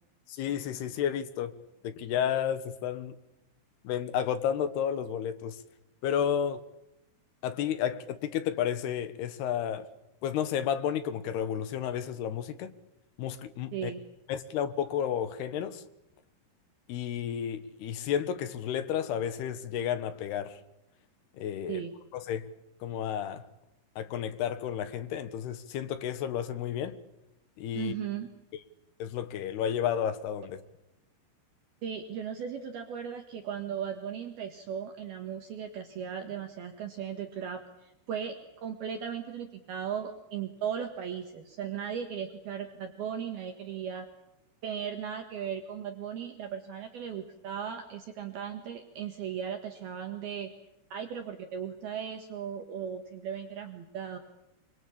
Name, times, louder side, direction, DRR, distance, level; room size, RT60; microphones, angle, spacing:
voice 1, 0.3-1.6 1.8-3.2 3.8-5.6 6.0-6.6 7.4-9.9 10.2-12.7 13.2-13.9 14.3-15.8 16.9-20.6 21.3-21.8 22.1-22.5 22.8-23.4 24.0-27.0 27.6-27.9 29.0-30.6, left 9 dB, 70° left, 2.8 m, -32 dB
voice 2, 27.7-28.3 31.8-44.1 44.6-50.5 50.9-54.2, right 8 dB, 60° right, 3.1 m, -37 dB
26.5 x 24.0 x 8.7 m
omnidirectional pair, 5.8 m